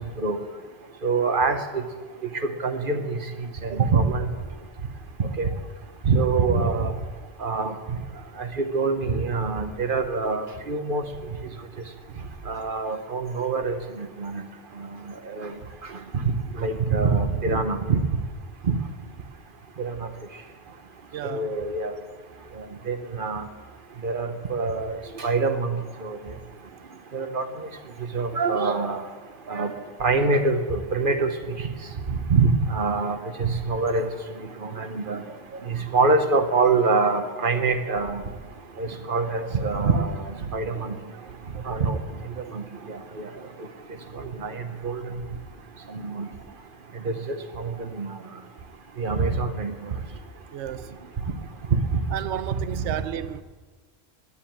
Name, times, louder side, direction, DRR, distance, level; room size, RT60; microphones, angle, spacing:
voice 1, 1.0-1.8 2.6-3.2 3.6-4.3 5.2-5.5 6.0-6.9 7.4-7.7 8.4-11.0 12.5-14.4 14.8-14.9 15.4-15.5 16.6-18.0 19.8-19.9 21.2-21.9 22.9-23.4 24.0-26.2 27.1-27.5 28.1-29.0 29.5-29.7 30.0-31.3 32.1-34.1 34.6-35.2 35.7-38.2 38.8-40.1 40.5-40.9 41.7-42.0 42.5-43.3 44.4-45.0 46.0-46.3 47.0-47.2 47.6-48.1 49.0-49.9, right 4 dB, 50° right, 1.1 m, -25 dB
voice 2, 21.1-21.5 50.5-51.0 52.1-53.4, right 11 dB, 80° right, 0.9 m, -32 dB
10.0 x 9.8 x 8.7 m
omnidirectional pair, 1.2 m